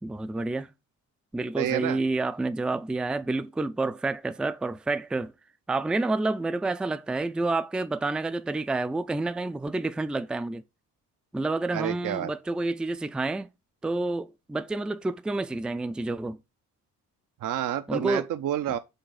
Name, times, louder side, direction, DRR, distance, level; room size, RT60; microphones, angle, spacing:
voice 1, 0.0-0.7 1.3-5.3 5.7-10.6 11.3-13.5 13.8-16.4 17.9-18.3 18.7-18.8, right 2 dB, 5° right, 0.3 m, -29 dB
voice 2, 1.6-2.0 11.7-12.3 17.4-18.8, right 11 dB, 60° right, 0.6 m, -29 dB
5.7 x 4.0 x 5.2 m
cardioid pair, 95°, 35 cm